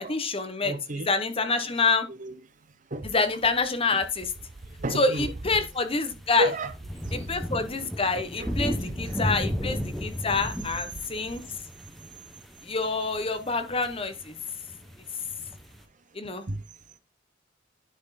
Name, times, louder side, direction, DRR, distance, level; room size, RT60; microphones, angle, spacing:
voice 1, 0.0-0.8 1.1-2.1 3.1-4.3 4.9-6.5 7.1-11.4 12.6-14.3 16.1-16.4, left 3 dB, 30° left, 1.0 m, -27 dB
voice 2, 0.6-1.1 2.1-2.4 2.9-3.1 4.6-5.3 6.4-6.7 7.0-7.4 8.4-9.2 16.5-16.7, right 1 dB, 45° right, 0.8 m, -32 dB
sound 1, 4.3-4.4 5.8-15.8, equal, ahead, 1.0 m, -35 dB
10.0 x 4.4 x 4.1 m
head